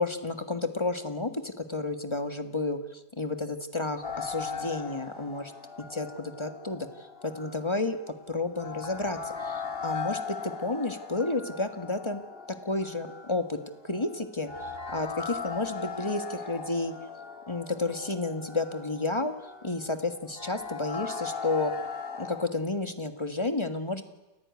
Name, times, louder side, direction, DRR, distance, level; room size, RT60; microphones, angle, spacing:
voice 1, 0.0-5.5 5.9-8.0 8.3-12.2 12.6-13.6 13.8-16.9 17.5-19.3 19.6-21.7 22.2-24.0, left 2 dB, 15° left, 9 dB, 1.5 m, -31 dB
sound 1, 4.0-22.5, left 5 dB, 35° left, 2.1 m, -39 dB
29.0 x 15.0 x 9.6 m, 1.0 s
omnidirectional pair, 1.8 m